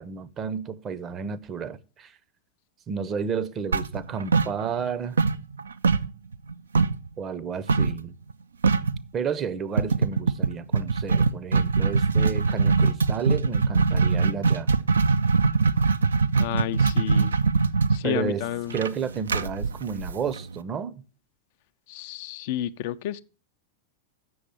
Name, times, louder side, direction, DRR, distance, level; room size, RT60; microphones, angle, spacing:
voice 1, 0.0-2.2 2.9-5.2 7.2-8.2 9.1-14.7 18.0-18.4 18.7-21.0, right 6 dB, 25° right, 0.7 m, -31 dB
sound 1, 3.7-4.9 5.2-7.1 7.7-8.0 8.3-8.4 8.6-9.0 9.8-20.6, right 4 dB, 70° right, 0.4 m, -22 dB
voice 2, 16.4-17.3 17.9-18.8 21.9-23.2, left 12 dB, 50° left, 0.4 m, -31 dB
7.8 x 6.6 x 7.2 m
figure-of-eight pair, 90°, 0 cm